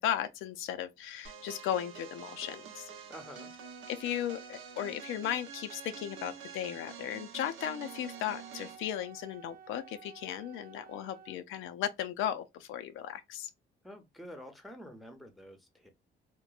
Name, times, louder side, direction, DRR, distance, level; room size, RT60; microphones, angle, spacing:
voice 1, 0.0-2.9 3.9-13.5, left 10 dB, 85° left, 0.4 m, -36 dB
sound 1, 1.2-8.9, right 7 dB, 80° right, 0.7 m, -47 dB
voice 2, 3.1-3.5 13.8-15.9, equal, ahead, 0.7 m, -48 dB
Wind instrument woodwind instrument, 7.5-11.4, right 7 dB, 50° right, 0.4 m, -53 dB
2.9 x 2.1 x 2.3 m
cardioid pair, 90°, 20 cm